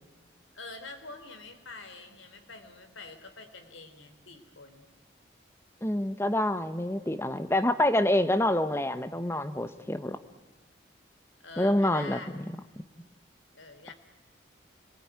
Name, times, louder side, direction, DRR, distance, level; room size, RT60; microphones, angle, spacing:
voice 1, 0.5-4.9 11.4-12.3 13.5-13.9, left 3 dB, 85° left, 7 dB, 3.6 m, -46 dB
voice 2, 5.8-10.2 11.6-12.4, left 1 dB, 15° left, 10 dB, 1.0 m, -27 dB
27.5 x 21.0 x 9.6 m, 1.3 s
head